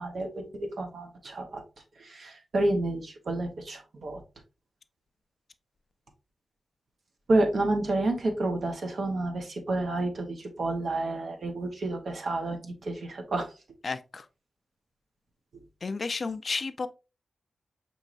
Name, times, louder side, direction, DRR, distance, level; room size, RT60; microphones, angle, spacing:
voice 1, 0.0-1.6 2.0-4.2 7.3-13.5, right 2 dB, 65° right, 0.9 m, -29 dB
voice 2, 13.8-14.3 15.8-16.9, left 4 dB, 45° left, 0.3 m, -32 dB
5.4 x 3.0 x 2.5 m
wide cardioid pair, 130°, 0 cm